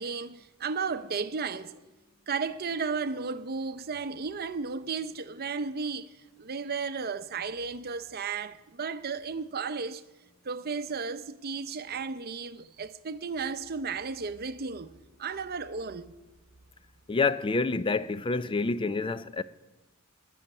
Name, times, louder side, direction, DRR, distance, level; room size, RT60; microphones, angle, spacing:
voice 1, 0.0-1.8 2.3-6.1 6.4-10.0 10.4-16.1, right 5 dB, 45° right, 0.7 m, -34 dB
voice 2, 17.1-19.4, left 3 dB, 25° left, 0.4 m, -28 dB
11.5 x 9.2 x 9.8 m
head